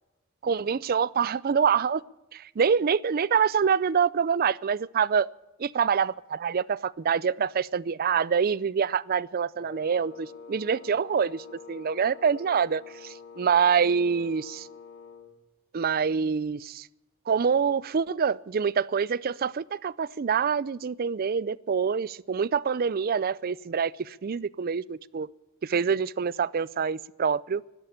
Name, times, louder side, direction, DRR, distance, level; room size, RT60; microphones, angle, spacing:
voice 1, 0.4-2.0 2.3-5.3 5.6-14.7 15.7-16.9 17.3-25.3 25.6-27.6, right 6 dB, 45° right, 0.4 m, -26 dB
Wind instrument woodwind instrument, 9.6-15.4, left 5 dB, 55° left, 2.0 m, -46 dB
11.5 x 11.5 x 9.9 m
head